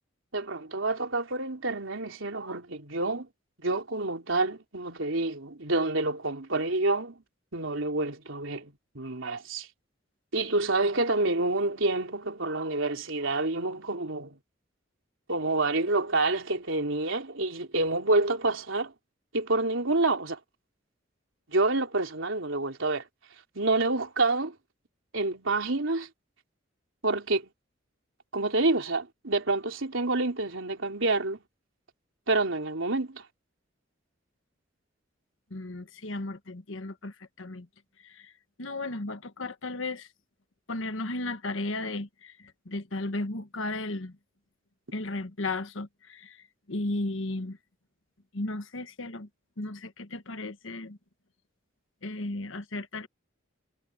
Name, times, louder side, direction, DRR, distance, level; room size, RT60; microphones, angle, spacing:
voice 1, 0.3-3.3 3.6-7.2 7.5-9.7 10.3-14.4 15.3-18.9 19.3-20.4 21.5-23.0 23.5-24.5 25.1-26.1 27.0-27.5 28.3-31.4 32.3-33.2, right 2 dB, 80° right, 3.3 m, -28 dB
voice 2, 35.5-37.7 38.1-38.2 38.6-40.1 40.7-44.1 44.9-46.4 46.7-47.6 48.3-49.3 49.6-51.0 52.0-53.1, left 2 dB, 80° left, 1.4 m, -35 dB
head